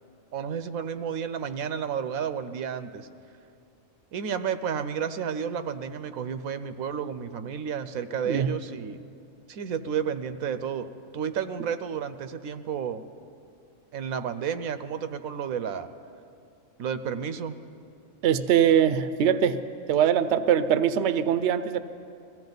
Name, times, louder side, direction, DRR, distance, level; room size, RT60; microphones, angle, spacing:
voice 1, 0.3-3.1 4.1-9.0 9.5-10.9 11.1-13.0 13.9-15.9 16.8-17.6, right 7 dB, 85° right, 10 dB, 1.1 m, -31 dB
voice 2, 18.2-19.6 19.9-21.8, right 9 dB, 65° right, 12 dB, 0.8 m, -22 dB
22.0 x 15.5 x 4.0 m, 2.5 s
omnidirectional pair, 1.4 m